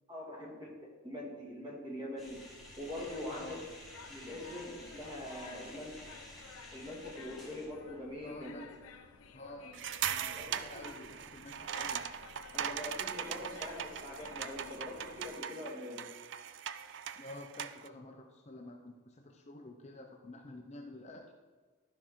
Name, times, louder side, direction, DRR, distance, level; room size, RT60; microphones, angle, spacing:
voice 1, 0.1-0.7 1.0-2.4 2.8-3.5 4.1-6.0 6.7-8.5 10.4-10.9 12.5-16.0, left 1 dB, 20° right, -2 dB, 2.1 m, -43 dB
sound 1, 2.2-7.7, left 1 dB, ahead, 1.9 m, -52 dB
sound 2, 2.5-15.4, left 4 dB, 85° left, 0.7 m, -54 dB
voice 2, 3.3-3.6 8.2-8.7 9.3-12.0 17.1-21.3, left 2 dB, 30° left, 3 dB, 0.6 m, -49 dB
sound 3, 9.7-17.9, right 9 dB, 60° right, 0.4 m, -40 dB
12.0 x 5.7 x 4.5 m, 1.4 s
head